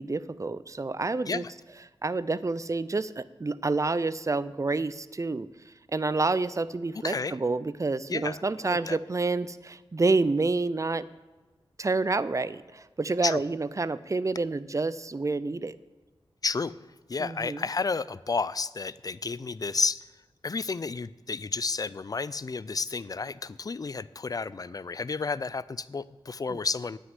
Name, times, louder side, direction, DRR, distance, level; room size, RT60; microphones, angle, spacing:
voice 1, 0.0-1.4 2.0-5.5 5.9-11.0 11.8-15.8 17.2-17.6 26.5-26.6, right 3 dB, 35° right, 16 dB, 0.5 m, -28 dB
voice 2, 7.0-7.4 8.1-9.0 13.2-13.4 16.4-16.7 17.1-20.0 20.4-27.0, left 4 dB, 40° left, 18 dB, 0.4 m, -31 dB
9.4 x 6.5 x 8.1 m, 1.2 s
wide cardioid pair, 60°, 10 cm